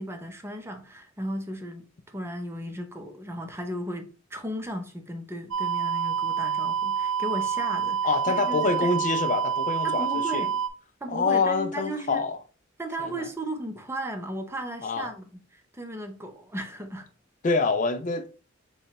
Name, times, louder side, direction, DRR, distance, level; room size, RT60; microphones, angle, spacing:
voice 1, 0.0-8.9 9.8-10.6 11.0-12.2 12.8-17.1, right 1 dB, 15° right, 0.6 m, -35 dB
sound 1, 5.5-10.7, right 7 dB, 80° right, 0.6 m, -27 dB
voice 2, 8.0-10.4 11.1-12.4 13.0-13.1 14.8-15.1 17.4-18.3, left 4 dB, 40° left, 0.4 m, -26 dB
6.9 x 2.3 x 2.9 m
head